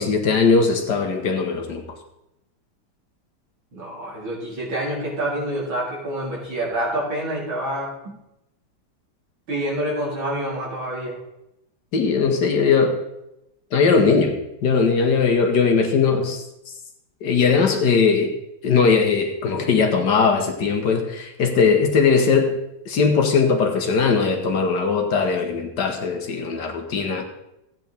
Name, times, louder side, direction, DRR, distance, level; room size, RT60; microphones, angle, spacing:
voice 1, 0.0-1.8 11.9-13.0 13.7-14.3 14.6-16.4 17.2-18.3 18.6-22.6 22.9-27.2, left 5 dB, 60° left, 4 dB, 1.7 m, -19 dB
voice 2, 3.7-8.2 9.5-11.2, right 1 dB, 80° right, -5 dB, 4.2 m, -27 dB
15.5 x 9.1 x 3.5 m, 0.88 s
omnidirectional pair, 2.2 m